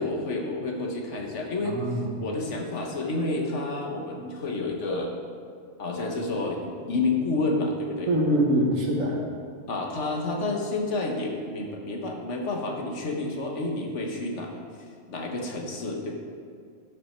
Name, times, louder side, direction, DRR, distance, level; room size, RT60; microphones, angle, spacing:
voice 1, 0.0-5.1 5.8-8.1 9.7-16.1, left 2 dB, 65° left, 0 dB, 1.5 m, -30 dB
voice 2, 1.6-2.1 8.1-9.2, right 1 dB, 90° right, 0 dB, 1.6 m, -24 dB
12.5 x 5.6 x 4.5 m, 2.2 s
omnidirectional pair, 1.3 m